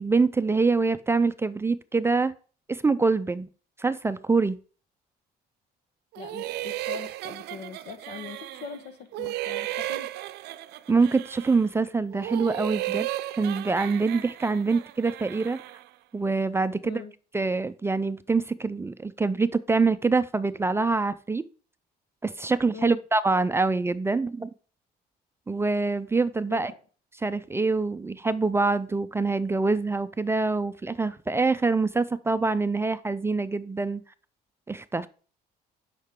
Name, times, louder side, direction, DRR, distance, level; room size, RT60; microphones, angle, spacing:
voice 1, 0.0-2.3 2.7-3.5 3.8-4.6 10.9-13.1 13.4-15.6 16.1-17.0 17.3-21.4 22.2-24.5 25.5-26.7 27.2-34.0 34.7-35.1, right 4 dB, 15° right, 13 dB, 0.4 m, -25 dB
sound 1, 6.1-8.8 9.1-11.7 12.1-15.9, right 15 dB, 75° right, 0.5 m, -35 dB
voice 2, 6.2-10.1 16.8-17.1 22.7-23.0 26.5-26.6, left 6 dB, 80° left, 10 dB, 1.2 m, -41 dB
9.9 x 5.7 x 3.6 m, 0.40 s
cardioid pair, 110°, 17 cm